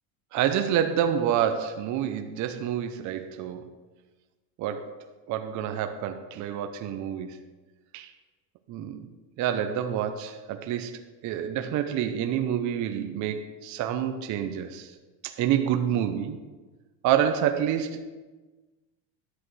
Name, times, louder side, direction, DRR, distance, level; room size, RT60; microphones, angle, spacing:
voice 1, 0.3-3.6 4.6-7.4 7.9-8.1 8.7-9.1 9.4-14.9 15.2-16.4 17.0-18.0, right 9 dB, 40° right, 0.6 m, -28 dB
11.5 x 8.2 x 3.2 m
supercardioid pair, 135°, 47 cm